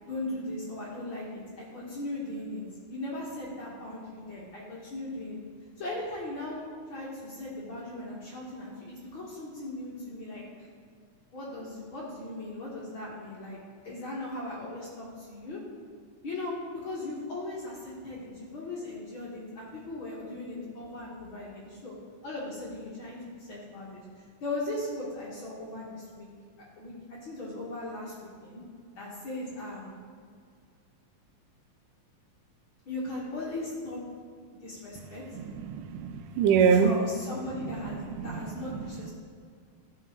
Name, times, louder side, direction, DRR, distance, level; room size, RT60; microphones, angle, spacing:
voice 1, 0.1-2.6 2.9-5.4 5.8-10.7 11.3-15.6 16.2-16.5 16.8-22.0 22.2-26.3 26.6-28.6 28.9-30.0 32.8-34.0 34.6-35.2 36.6-39.1, left 2 dB, 50° left, -5 dB, 1.7 m, -38 dB
voice 2, 35.3-36.9 38.2-38.4, right 6 dB, 90° right, 8 dB, 2.2 m, -24 dB
14.5 x 5.7 x 3.0 m, 2.1 s
omnidirectional pair, 3.7 m